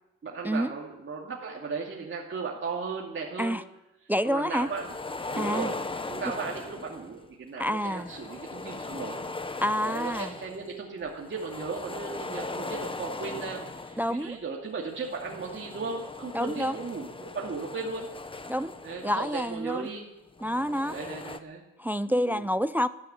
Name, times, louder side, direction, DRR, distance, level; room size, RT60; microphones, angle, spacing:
voice 1, 0.2-3.6 4.2-4.9 5.3-5.8 6.1-9.2 9.8-18.1 18.8-20.1 20.9-21.6 22.1-22.4, right 4 dB, 40° right, -2 dB, 2.6 m, -36 dB
voice 2, 4.1-4.7 5.4-5.7 7.6-8.1 9.6-10.3 14.0-14.4 16.3-16.8 18.5-18.7 19.0-19.9 20.4-21.0 21.8-22.9, equal, 5° right, 15 dB, 0.5 m, -28 dB
sound 1, 4.6-7.2 7.8-10.7 11.1-14.3 14.9-19.7 20.3-21.4, left 3 dB, 15° left, 1.1 m, -39 dB
13.0 x 12.0 x 8.9 m, 0.96 s
cardioid pair, 90°, 30 cm